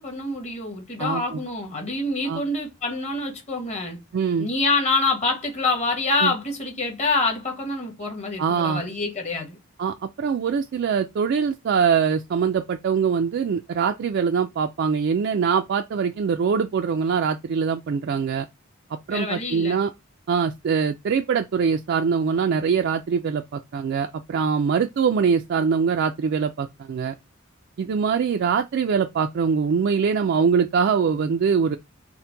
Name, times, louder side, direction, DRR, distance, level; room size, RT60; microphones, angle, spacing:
voice 1, 0.0-4.0 4.4-9.6 19.1-19.8, left 3 dB, 35° left, 1.3 m, -26 dB
voice 2, 1.0-1.4 2.3-2.4 4.1-4.5 6.2-6.3 8.4-8.8 9.8-18.5 19.1-19.9 20.3-27.1 27.8-31.8, right 6 dB, 55° right, 0.3 m, -23 dB
4.4 x 2.1 x 3.8 m
head